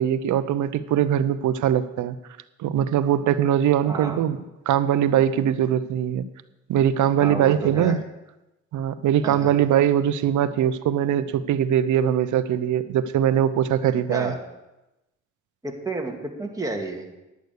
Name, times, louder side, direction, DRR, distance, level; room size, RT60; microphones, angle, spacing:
voice 1, 0.0-2.1 2.6-4.4 4.7-6.2 6.7-8.0 8.7-14.3, right 10 dB, 75° right, 13 dB, 0.8 m, -21 dB
voice 2, 3.9-4.2 7.2-8.0 9.2-9.5 14.1-14.4 15.6-17.1, right 2 dB, 10° right, 1 dB, 2.1 m, -31 dB
11.0 x 8.2 x 6.5 m, 0.98 s
cardioid pair, 90°, 30 cm